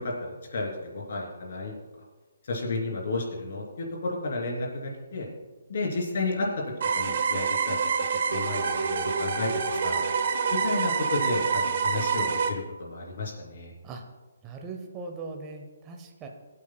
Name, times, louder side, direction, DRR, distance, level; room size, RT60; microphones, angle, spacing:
voice 1, 0.0-1.7 2.4-5.3 5.7-6.5 6.9-7.8 8.1-10.0 10.5-13.7, left 3 dB, 50° left, -2 dB, 3.0 m, -32 dB
sound 1, 6.8-12.5, right 5 dB, 45° right, 1.0 m, -27 dB
voice 2, 14.4-16.3, right 3 dB, 15° right, 2 dB, 0.7 m, -39 dB
22.0 x 8.5 x 2.2 m, 1.3 s
hypercardioid pair, 170°, 0 cm